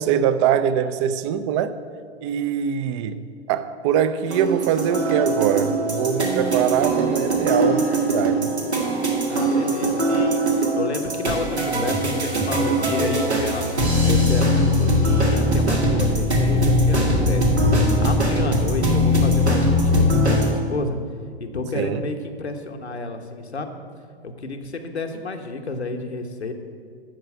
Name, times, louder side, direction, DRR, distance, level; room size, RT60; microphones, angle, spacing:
voice 1, 0.0-1.8 2.2-3.2 3.5-8.5 21.7-22.0, right 9 dB, 30° right, 0.5 m, -23 dB
sound 1, 4.3-20.5, equal, 85° right, 1.9 m, -21 dB
voice 2, 9.3-13.7 14.0-17.5 18.0-21.0 21.4-23.7 24.2-26.5, left 3 dB, 80° left, 1.1 m, -31 dB
12.5 x 4.8 x 7.9 m
figure-of-eight pair, 105°, 32 cm